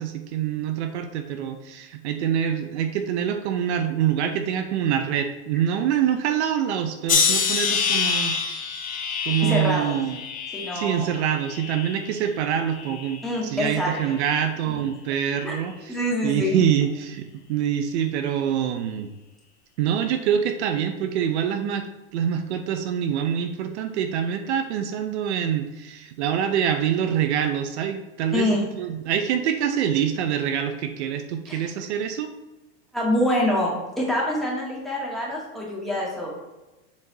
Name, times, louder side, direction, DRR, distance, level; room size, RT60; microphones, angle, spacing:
voice 1, 0.0-8.4 9.3-10.2 10.7-16.0 16.2-19.1 19.8-21.9 22.1-28.5 28.8-32.3, right 9 dB, 75° right, 7 dB, 0.8 m, -25 dB
sound 1, 7.1-12.2 12.7-13.4 14.1-14.4, left 6 dB, 25° left, 0.9 m, -27 dB
voice 2, 9.4-10.0 10.5-11.1 13.2-14.1 14.7-14.8 15.4-15.5 15.9-16.6 28.3-28.7 31.5-31.7 32.9-33.7 34.0-36.3, left 1 dB, ahead, -5 dB, 2.0 m, -25 dB
7.3 x 4.1 x 4.0 m, 1.1 s
supercardioid pair, 125°, 34 cm